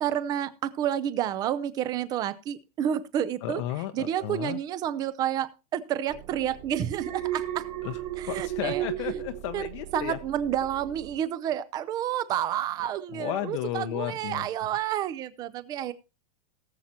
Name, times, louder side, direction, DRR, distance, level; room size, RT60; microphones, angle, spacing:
voice 1, 0.0-3.6 3.9-7.6 8.2-8.9 9.5-15.9, right 10 dB, 20° right, 15 dB, 0.5 m, -30 dB
voice 2, 3.4-4.6 7.8-8.0 8.3-10.2 13.1-14.5, left 13 dB, 45° left, 7 dB, 0.7 m, -33 dB
sound 1, 6.1-11.2, right 11 dB, 55° right, 3.5 m, -46 dB
Alarm, 6.9-10.2 10.6-11.0, right 13 dB, 75° right, 3.1 m, -34 dB
18.5 x 7.3 x 2.9 m, 0.29 s
supercardioid pair, 175°, 20 cm